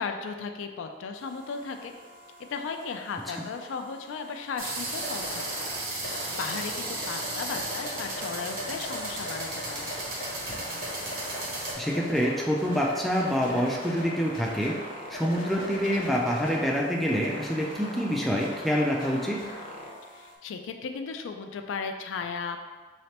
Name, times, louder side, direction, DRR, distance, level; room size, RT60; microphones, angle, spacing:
voice 1, 0.0-1.9 2.5-10.0 15.8-16.0 20.1-22.6, left 5 dB, 80° left, 6 dB, 0.3 m, -36 dB
sound 1, 1.1-20.3, left 1 dB, 45° left, 0.6 m, -40 dB
sound 2, 4.6-11.7, right 2 dB, 45° right, 0.8 m, -35 dB
voice 2, 11.8-14.7 15.1-19.4, equal, ahead, -3 dB, 0.3 m, -26 dB
3.9 x 3.2 x 2.9 m, 1.4 s
head